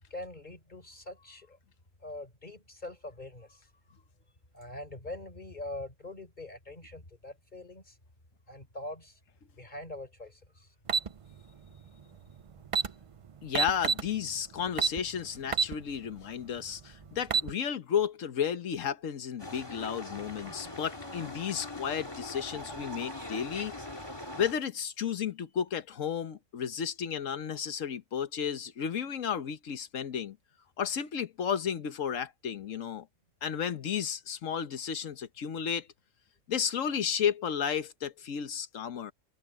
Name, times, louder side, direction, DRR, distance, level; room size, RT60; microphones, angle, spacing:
voice 1, 0.1-1.6 2.0-3.7 4.5-8.0 8.5-9.2 9.6-10.7, left 2 dB, 35° left, 4.6 m, -43 dB
sound 1, 10.9-11.1 12.3-12.4 12.6-12.9 13.5-14.1 14.8-15.0 15.5-15.7 16.2-16.3 17.1-17.5, right 5 dB, 55° right, 0.3 m, -26 dB
voice 2, 13.4-23.7 24.4-30.4 30.8-33.1 33.4-35.9 36.5-39.1, left 8 dB, 85° left, 1.4 m, -33 dB
sound 2, 19.4-24.5, left 2 dB, 20° left, 1.9 m, -42 dB
omnidirectional pair, 1.3 m